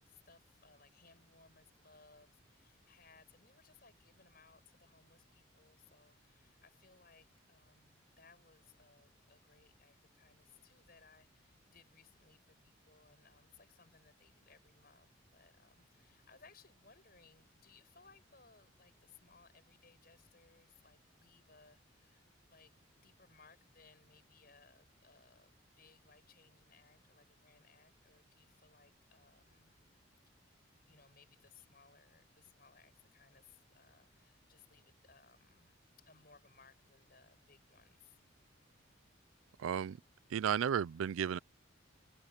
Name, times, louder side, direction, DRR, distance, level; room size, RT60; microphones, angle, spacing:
voice 1, 0.0-29.8 30.4-38.2, left 4 dB, 50° left, 7.0 m, -65 dB
voice 2, 39.6-40.0 40.3-41.4, right 8 dB, 90° right, 0.4 m, -33 dB
head